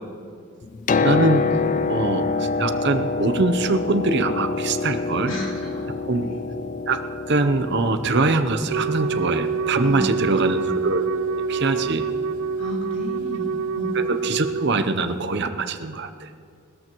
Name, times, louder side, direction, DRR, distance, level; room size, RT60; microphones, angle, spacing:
Piano, 0.6-14.4 15.5-15.6, left 4 dB, 35° left, 0.3 m, -28 dB
voice 1, 1.0-1.4 1.9-5.3 6.1-6.2 6.9-11.0 11.5-12.0 13.9-16.3, right 3 dB, 55° right, 9 dB, 0.7 m, -23 dB
voice 2, 5.3-6.3 9.8-10.9 12.6-14.0, equal, 65° left, -5 dB, 3.7 m, -33 dB
Wind instrument woodwind instrument, 8.7-14.8, right 5 dB, 85° right, 0.4 m, -26 dB
20.5 x 13.5 x 3.0 m, 2.3 s
head